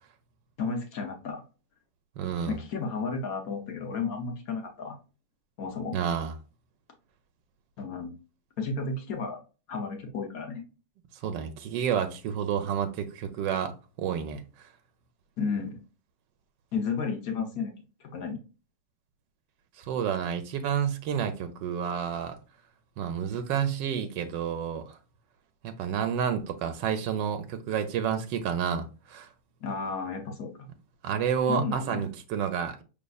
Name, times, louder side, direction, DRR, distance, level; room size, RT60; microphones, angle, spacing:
voice 1, 0.6-1.4 2.5-5.0 5.6-5.9 7.8-8.1 8.6-9.4 9.7-10.6 15.4-15.8 16.7-17.7 18.0-18.4 29.6-30.7 31.5-32.1, left 4 dB, 60° left, 1.1 m, -32 dB
voice 2, 2.2-2.6 5.9-6.4 11.2-14.7 19.8-22.4 23.0-25.0 25.6-29.3 31.0-32.8, right 8 dB, 80° right, 1.3 m, -30 dB
5.2 x 3.4 x 2.3 m
omnidirectional pair, 1.9 m